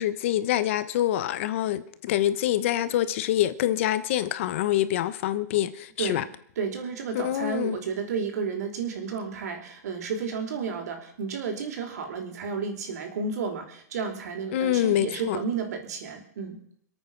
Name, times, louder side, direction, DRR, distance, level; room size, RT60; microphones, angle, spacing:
voice 1, 0.0-6.2 7.1-7.8 14.5-15.4, left 12 dB, 45° left, 1.0 m, -26 dB
voice 2, 6.6-16.6, right 5 dB, 65° right, 4.7 m, -32 dB
26.5 x 8.9 x 5.9 m
supercardioid pair, 170°, 9 cm